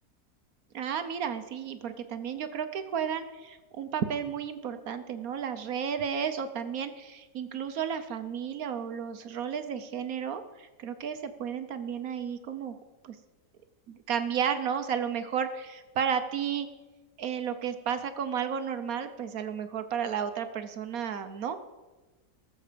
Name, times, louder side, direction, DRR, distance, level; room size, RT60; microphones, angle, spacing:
voice 1, 0.7-12.8 13.0-13.2 13.9-16.7 17.2-21.6, right 7 dB, 65° right, 9 dB, 1.2 m, -33 dB
18.5 x 7.5 x 5.1 m, 1.2 s
omnidirectional pair, 1.7 m